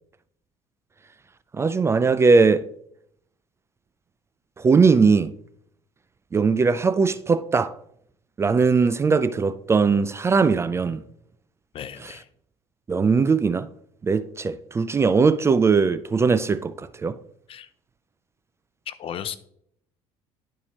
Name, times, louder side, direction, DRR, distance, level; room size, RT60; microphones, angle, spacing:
voice 1, 1.5-2.7 4.6-5.3 6.3-7.7 8.4-11.0 12.9-13.7 14.0-17.2, right 4 dB, 20° right, 0.4 m, -20 dB
voice 2, 11.7-12.3 17.5-17.7 18.9-19.4, left 9 dB, 45° left, 0.7 m, -35 dB
11.0 x 4.6 x 2.9 m
supercardioid pair, 90°, 13 cm